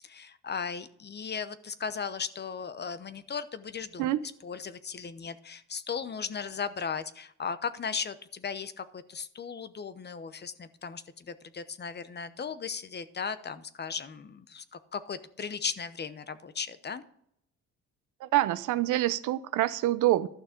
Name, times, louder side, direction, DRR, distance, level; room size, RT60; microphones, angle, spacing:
voice 1, 0.0-4.1 4.4-17.0, left 6 dB, 35° left, 0.8 m, -37 dB
voice 2, 18.2-20.3, right 15 dB, 90° right, 0.6 m, -26 dB
12.0 x 6.4 x 5.1 m
cardioid pair, 90°, 30 cm